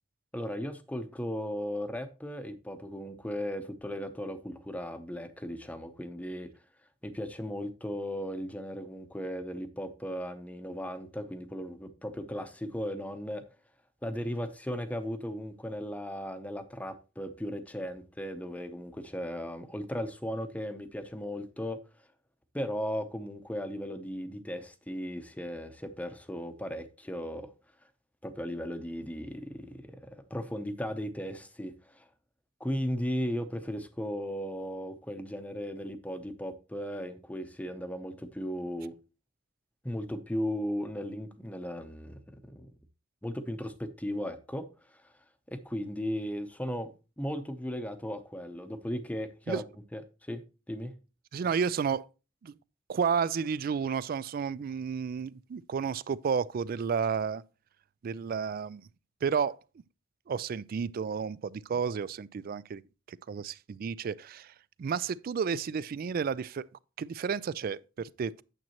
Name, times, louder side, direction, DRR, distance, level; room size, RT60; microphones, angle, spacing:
voice 1, 0.3-6.5 7.0-13.4 14.0-21.8 22.5-27.5 28.2-32.1 32.6-38.9 39.8-42.7 43.2-45.1 45.5-46.9 47.2-49.6 49.9-50.4 50.7-50.9, equal, 5° left, 0.7 m, -36 dB
voice 2, 51.3-52.1 52.4-52.5 52.9-57.4 58.0-58.9 59.2-59.6 60.3-62.8 63.1-64.5 64.8-66.6 67.0-68.4, right 6 dB, 45° right, 0.3 m, -31 dB
9.1 x 7.3 x 2.9 m
head